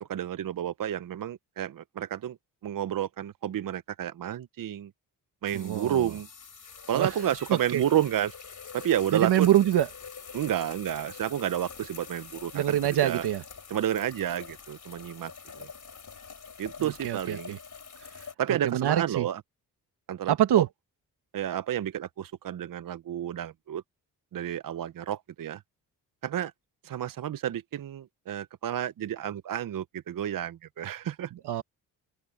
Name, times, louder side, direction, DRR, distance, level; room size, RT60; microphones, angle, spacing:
voice 1, 0.0-2.4 2.6-4.9 5.4-6.3 6.9-8.3 8.7-9.5 10.3-12.8 13.0-13.2 13.7-15.7 16.6-17.5 18.4-19.4 20.1-20.6 21.3-23.8 24.3-25.6 26.2-26.5 26.8-31.3, right 10 dB, 55° right, 0.7 m, -31 dB
sound 1, 5.5-18.3, left 6 dB, 50° left, 5.1 m, -45 dB
voice 2, 5.5-6.1 6.9-7.1 7.5-7.8 9.1-9.9 12.5-13.4 16.8-17.6 18.5-19.3 20.3-20.7 31.4-31.6, right 12 dB, 80° right, 2.0 m, -25 dB
open air
cardioid pair, 60°, 40 cm